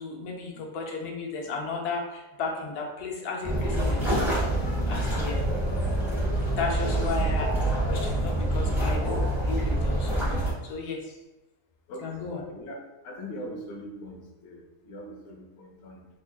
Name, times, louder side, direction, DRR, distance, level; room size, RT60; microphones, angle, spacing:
voice 1, 0.0-4.3 4.9-5.4 6.5-7.6 7.9-9.2 9.5-11.0 12.0-12.4, left 4 dB, 80° left, 0 dB, 1.2 m, -34 dB
sound 1, 3.4-10.5, right 1 dB, ahead, 1.1 m, -26 dB
voice 2, 6.9-7.3 8.5-8.9 11.9-12.8 13.0-16.1, left 1 dB, 55° left, 0 dB, 0.7 m, -41 dB
3.7 x 3.4 x 2.2 m, 1.1 s
omnidirectional pair, 1.7 m